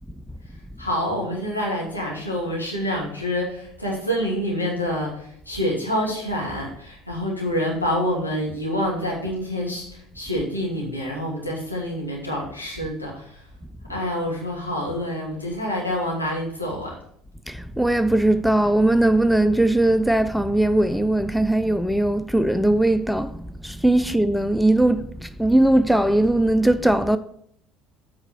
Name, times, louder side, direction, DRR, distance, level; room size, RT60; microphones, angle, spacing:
voice 1, 0.8-5.1 5.5-9.9 10.2-13.3 13.9-16.9, equal, 90° left, 2.1 m, -27 dB
voice 2, 17.5-23.3 23.6-25.1 25.4-27.2, right 1 dB, ahead, 0.4 m, -19 dB
8.0 x 4.3 x 5.8 m
figure-of-eight pair, 60°, 0 cm